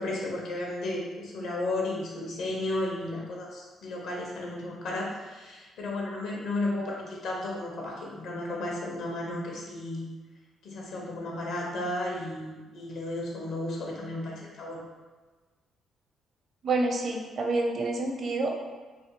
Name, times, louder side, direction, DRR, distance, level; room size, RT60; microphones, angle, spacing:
voice 1, 0.0-10.1 10.6-14.8, left 2 dB, 80° left, -2 dB, 0.9 m, -33 dB
voice 2, 16.6-18.6, right 2 dB, 55° right, 1 dB, 0.6 m, -28 dB
3.4 x 2.6 x 2.9 m, 1.3 s
cardioid pair, 90°, 0 cm